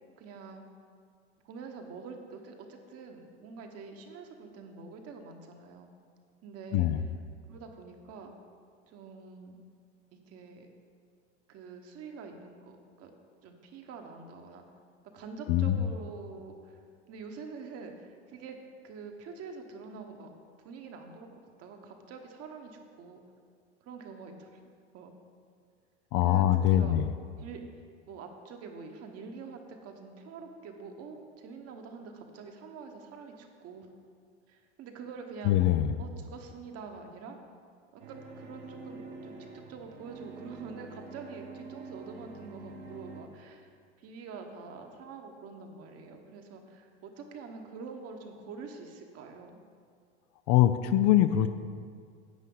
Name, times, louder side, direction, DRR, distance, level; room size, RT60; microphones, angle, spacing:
voice 1, 0.2-0.6 1.4-5.9 6.4-6.9 7.5-8.3 8.9-9.6 10.1-10.7 11.5-13.1 13.4-14.7 15.1-18.6 18.8-20.3 20.6-23.2 23.8-24.5 24.9-25.1 26.2-27.0 27.4-27.6 28.1-33.9 34.5-35.7 36.0-37.4 37.9-43.7 44.0-49.6, right 5 dB, 45° right, 4 dB, 1.3 m, -46 dB
voice 2, 6.7-7.0 15.5-15.9 26.1-27.1 35.4-35.9 50.5-51.5, left 12 dB, 50° left, 11 dB, 0.5 m, -23 dB
sound 1, 38.0-43.2, right 3 dB, 70° right, 1.7 m, -46 dB
10.0 x 8.2 x 4.0 m, 2.1 s
hypercardioid pair, 95°, 34 cm